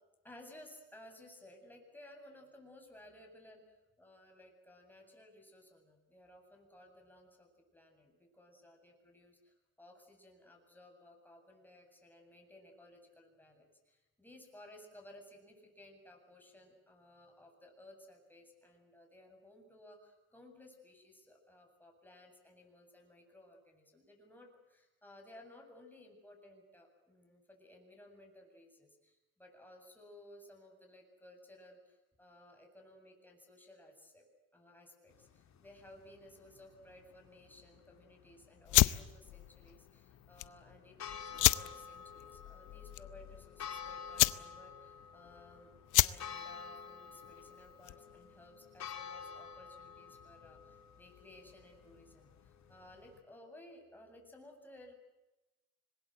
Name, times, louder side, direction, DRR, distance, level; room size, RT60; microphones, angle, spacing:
voice 1, 0.2-3.6 4.0-34.2 34.5-45.7 46.0-54.9, left 1 dB, 5° left, 1 dB, 7.9 m, -58 dB
sound 1, 35.1-53.2, left 7 dB, 65° left, 2.6 m, -51 dB
sound 2, 38.6-48.2, left 16 dB, 85° left, 0.8 m, -33 dB
26.0 x 21.0 x 8.0 m, 1.0 s
cardioid pair, 90°, 30 cm